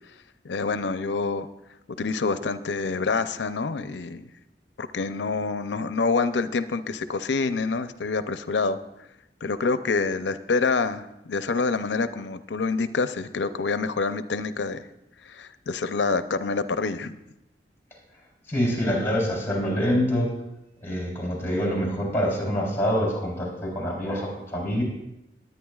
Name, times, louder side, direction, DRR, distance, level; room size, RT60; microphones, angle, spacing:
voice 1, 0.4-1.5 2.0-4.2 4.8-8.8 9.4-14.9 15.3-17.2, left 4 dB, 85° left, 11 dB, 0.6 m, -27 dB
voice 2, 18.5-20.3 20.8-24.8, equal, 15° left, -3 dB, 3.5 m, -25 dB
19.5 x 9.3 x 2.4 m, 0.90 s
head